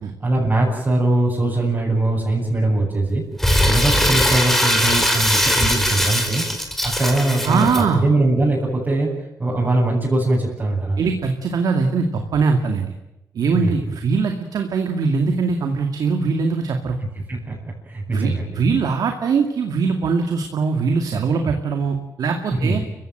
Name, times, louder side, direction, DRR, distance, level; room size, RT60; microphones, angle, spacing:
voice 1, 0.2-3.2 3.6-6.4 6.8-9.1 9.4-11.0 13.5-13.8 17.3-18.6 22.6-22.8, right 2 dB, 30° right, -6 dB, 7.9 m, -21 dB
Crumpling crinkling, 3.4-7.8, equal, 5° left, 4.7 m, -20 dB
voice 2, 7.4-8.0 11.0-12.9 13.3-17.0 18.1-22.8, right 5 dB, 75° right, 5 dB, 2.3 m, -21 dB
29.5 x 16.0 x 7.7 m, 0.94 s
cardioid pair, 85°, 6 cm